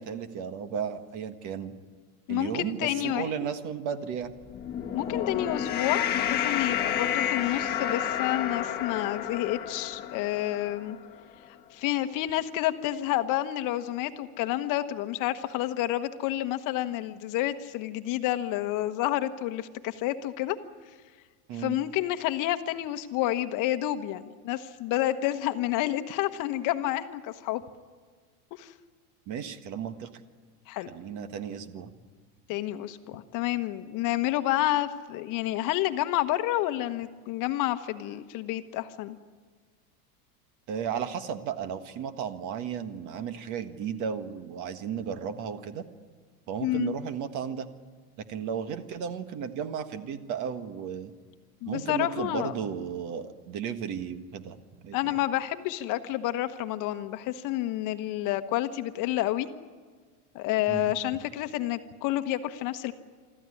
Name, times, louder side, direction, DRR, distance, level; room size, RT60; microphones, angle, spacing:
voice 1, 0.0-1.7 2.3-4.3 21.5-21.8 29.3-30.1 30.9-31.9 40.7-45.8 46.5-47.7 48.2-51.1 51.7-55.2 60.7-60.9, right 7 dB, 40° right, 10 dB, 1.6 m, -34 dB
voice 2, 2.3-3.5 4.9-11.0 11.7-20.6 21.5-27.6 28.5-28.7 30.7-30.9 32.5-39.2 46.6-46.9 51.6-52.5 54.9-59.5 60.3-62.9, left 14 dB, 45° left, 10 dB, 1.2 m, -29 dB
sound 1, 4.4-11.0, left 9 dB, 20° left, 1.7 m, -30 dB
25.0 x 14.0 x 9.9 m, 1.5 s
supercardioid pair, 140°, 45 cm